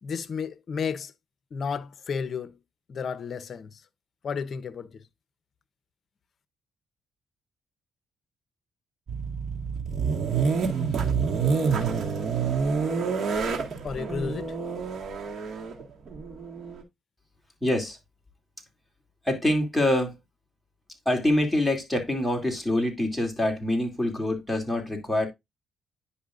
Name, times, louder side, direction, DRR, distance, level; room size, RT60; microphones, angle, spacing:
voice 1, 0.0-1.1 1.5-2.6 2.9-3.8 4.2-5.0 13.8-14.6, left 6 dB, 50° left, 0.8 m, -32 dB
sound 1, 9.1-16.8, right 5 dB, 50° right, 1.8 m, -28 dB
voice 2, 17.6-18.0 19.2-20.2 21.0-25.3, left 1 dB, 5° left, 2.7 m, -25 dB
10.0 x 5.5 x 2.5 m
cardioid pair, 90°, 0 cm